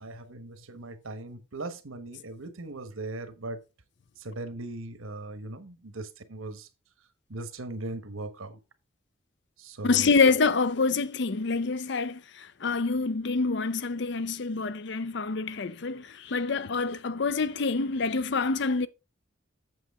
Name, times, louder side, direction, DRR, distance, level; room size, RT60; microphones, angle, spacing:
voice 1, 0.0-3.6 4.2-6.7 7.3-8.6 9.6-10.1, right 2 dB, 90° right, 1.2 m, -39 dB
voice 2, 9.8-18.9, left 4 dB, 55° left, 0.6 m, -26 dB
7.7 x 7.1 x 3.6 m
head